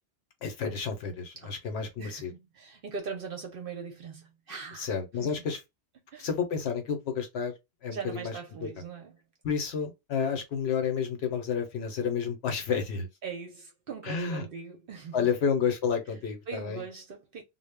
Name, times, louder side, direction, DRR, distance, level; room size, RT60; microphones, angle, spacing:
voice 1, 0.4-2.3 4.8-5.6 6.2-7.5 7.8-8.7 9.4-13.1 14.0-14.5 15.1-16.8, left 6 dB, 65° left, 0.8 m, -30 dB
voice 2, 2.0-4.9 5.2-5.5 6.1-6.3 7.9-9.2 13.2-15.3 16.5-17.4, right 5 dB, 60° right, 0.7 m, -40 dB
2.0 x 2.0 x 3.3 m
omnidirectional pair, 1.3 m